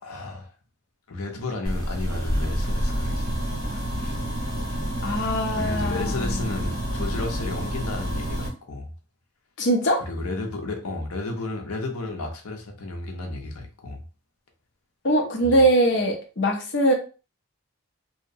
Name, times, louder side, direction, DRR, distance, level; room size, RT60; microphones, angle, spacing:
voice 1, 0.0-0.5 1.1-3.4 4.0-4.2 5.6-8.9 10.0-14.0 15.4-15.5, left 2 dB, 90° left, 3 dB, 0.7 m, -32 dB
sound 1, 1.6-8.5, equal, 75° right, 1.3 m, -28 dB
voice 2, 5.0-6.4 9.6-10.0 15.0-16.9, right 1 dB, 55° left, 2 dB, 0.6 m, -22 dB
2.7 x 2.0 x 2.7 m, 0.34 s
head